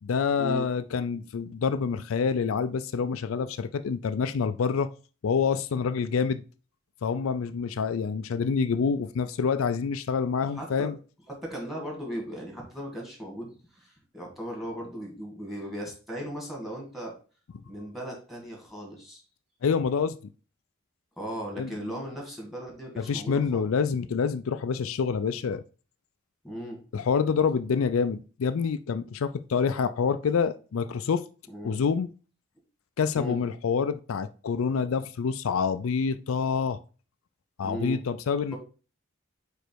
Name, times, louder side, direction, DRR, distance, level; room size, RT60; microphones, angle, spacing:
voice 1, 0.0-4.9 5.2-6.4 7.0-11.0 19.6-20.2 21.6-21.7 23.0-25.6 26.9-31.2 31.6-32.1 33.0-36.8 37.6-38.6, left 6 dB, 75° left, 0.4 m, -27 dB
voice 2, 10.4-10.9 11.3-17.1 17.7-19.2 21.2-23.7 26.4-26.8 31.5-31.8 33.1-33.4 37.6-38.0, equal, ahead, 2.1 m, -37 dB
5.1 x 4.5 x 4.5 m
head